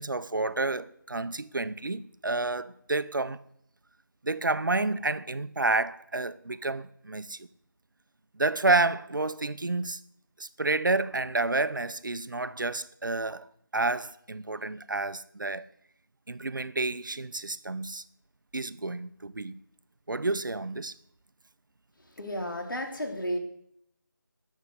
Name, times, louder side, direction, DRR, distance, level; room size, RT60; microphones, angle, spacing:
voice 1, 0.0-3.4 4.2-7.5 8.4-10.0 10.4-13.4 13.7-15.6 16.3-18.0 18.5-19.6 20.1-20.9, right 3 dB, 70° right, 0.8 m, -29 dB
voice 2, 22.0-23.4, equal, 75° left, 3.3 m, -33 dB
12.5 x 7.2 x 8.0 m
figure-of-eight pair, 165°, 11 cm